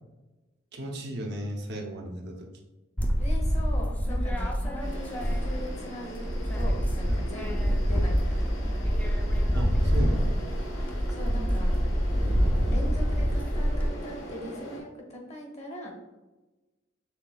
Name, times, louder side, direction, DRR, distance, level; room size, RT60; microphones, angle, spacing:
voice 1, 0.7-2.5 7.1-7.2 9.5-10.4 12.2-12.5, equal, 60° right, 1 dB, 0.7 m, -35 dB
sound 1, 3.0-5.8 6.1-13.9, equal, 10° left, 0.4 m, -26 dB
voice 2, 3.2-8.7 11.1-11.8 12.6-15.9, left 1 dB, 35° left, 1 dB, 1.0 m, -41 dB
sound 2, 4.8-14.8, right 1 dB, 80° left, 1.1 m, -41 dB
5.8 x 3.4 x 2.3 m, 1.1 s
head